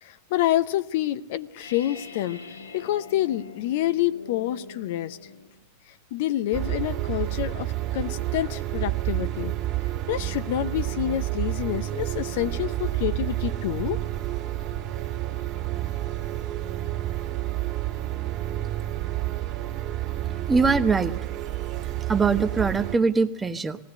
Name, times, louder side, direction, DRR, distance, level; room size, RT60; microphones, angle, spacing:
voice 1, 0.0-2.4 2.7-5.2 6.1-9.5 10.1-14.0, left 13 dB, 50° left, 13 dB, 0.7 m, -27 dB
sound 1, 1.6-5.6, left 3 dB, 75° left, 2.0 m, -43 dB
sound 2, 6.5-23.0, right 14 dB, 35° right, 2.2 m, -29 dB
voice 2, 20.5-21.1 22.1-23.8, right 4 dB, 15° right, 10 dB, 1.0 m, -22 dB
20.5 x 16.5 x 7.7 m, 0.91 s
figure-of-eight pair, 90°, 0 cm